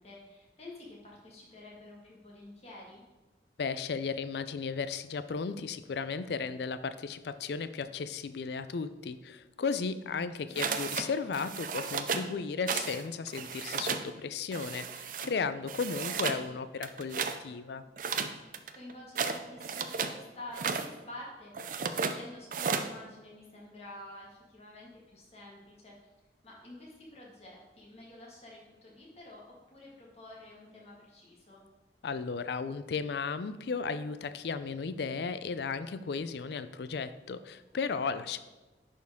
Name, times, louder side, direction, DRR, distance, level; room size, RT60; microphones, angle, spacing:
voice 1, 0.0-3.0 10.5-10.9 18.7-26.1 26.4-31.6, left 1 dB, 35° left, -4 dB, 1.7 m, -49 dB
voice 2, 3.6-17.8 32.0-38.4, left 5 dB, 70° left, 12 dB, 0.4 m, -35 dB
sound 1, 10.6-11.1 11.3-12.3 12.7-13.0 13.3-14.1 14.5-15.3 15.7-16.4 16.8-17.4 18.0-20.2 20.5-20.9 21.5-22.2 22.5-22.9, right 6 dB, 45° right, 0.4 m, -33 dB
10.5 x 4.5 x 3.5 m, 1.1 s
head